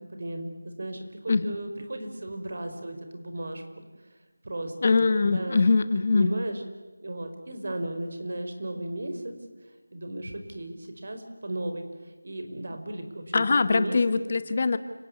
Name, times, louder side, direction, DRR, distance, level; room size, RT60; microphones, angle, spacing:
voice 1, 0.0-3.8 4.4-5.7 5.9-6.6 7.0-9.3 9.9-14.0, right 1 dB, 50° right, 6 dB, 5.0 m, -35 dB
voice 2, 4.8-6.3 13.3-14.8, left 4 dB, 35° left, 12 dB, 1.1 m, -22 dB
30.0 x 18.5 x 9.7 m, 1.2 s
figure-of-eight pair, 175°, 0 cm